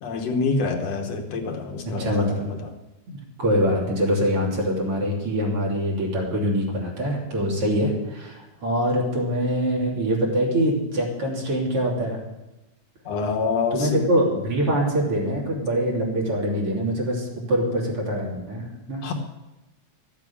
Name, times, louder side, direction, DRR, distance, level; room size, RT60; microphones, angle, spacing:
voice 1, 0.0-2.4 13.1-14.0 19.0-19.1, left 4 dB, 65° left, 4 dB, 2.2 m, -26 dB
voice 2, 1.8-2.4 3.1-12.2 13.7-19.1, equal, 50° right, -2 dB, 3.9 m, -24 dB
14.0 x 8.5 x 8.4 m, 1.0 s
omnidirectional pair, 3.3 m